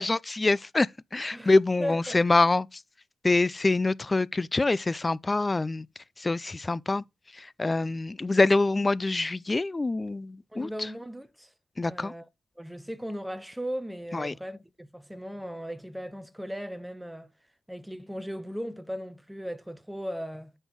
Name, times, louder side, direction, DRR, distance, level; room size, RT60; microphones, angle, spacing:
voice 1, 0.0-2.8 3.2-5.9 6.2-7.0 7.3-10.9 11.8-12.1 14.1-14.3, left 3 dB, 25° left, 0.4 m, -25 dB
voice 2, 1.8-2.2 10.5-11.5 11.9-12.3 12.6-17.3 17.7-20.5, equal, 5° right, 1.0 m, -37 dB
7.9 x 5.6 x 4.6 m
cardioid pair, 75°, 0 cm